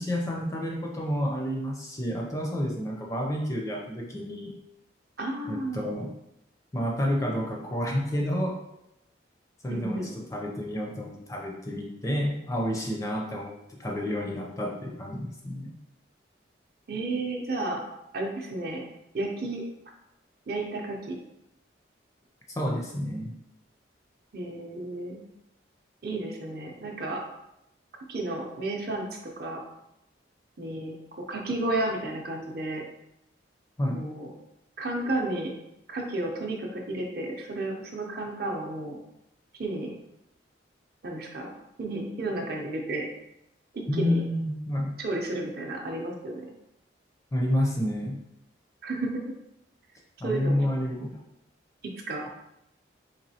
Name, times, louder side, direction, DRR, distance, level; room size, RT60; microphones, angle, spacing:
voice 1, 0.0-4.5 5.5-6.1 6.7-8.6 9.6-10.0 10.3-15.7 22.6-23.3 33.8-34.0 43.9-44.9 47.3-48.2 50.2-51.2, equal, 15° left, -1 dB, 0.4 m, -29 dB
voice 2, 5.2-6.0 9.7-10.1 16.9-17.8 18.1-18.9 19.1-19.6 20.5-21.2 24.3-25.2 26.0-27.2 28.1-29.1 29.4-29.6 30.6-32.8 33.9-34.3 34.8-35.5 35.9-39.0 39.5-39.9 41.0-41.5 41.8-43.0 43.7-44.2 45.0-46.4 48.8-49.2 50.2-50.7 52.1-52.2, right 2 dB, 50° right, 1 dB, 0.6 m, -32 dB
4.1 x 3.0 x 2.7 m, 0.84 s
head